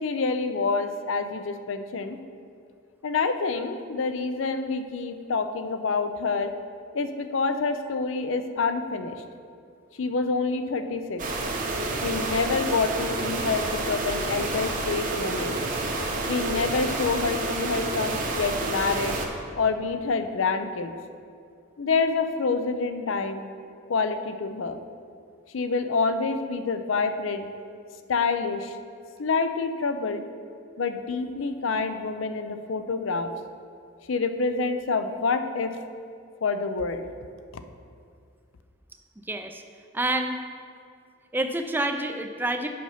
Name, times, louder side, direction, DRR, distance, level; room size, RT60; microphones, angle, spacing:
voice 1, 0.0-2.2 3.0-6.5 6.9-9.2 10.0-11.2 12.0-15.6 16.3-19.1 19.6-20.9 21.8-23.4 23.9-24.8 25.5-27.5 28.1-28.8 29.2-30.2 30.8-33.3 34.1-35.8 36.4-37.0, left 4 dB, 70° left, 9 dB, 0.5 m, -27 dB
sound 1, 11.2-19.3, right 2 dB, 40° right, 0.9 m, -29 dB
voice 2, 39.2-39.6 39.9-40.4 41.3-42.7, right 2 dB, 10° right, 6 dB, 0.4 m, -27 dB
7.5 x 5.5 x 5.7 m, 2.3 s
head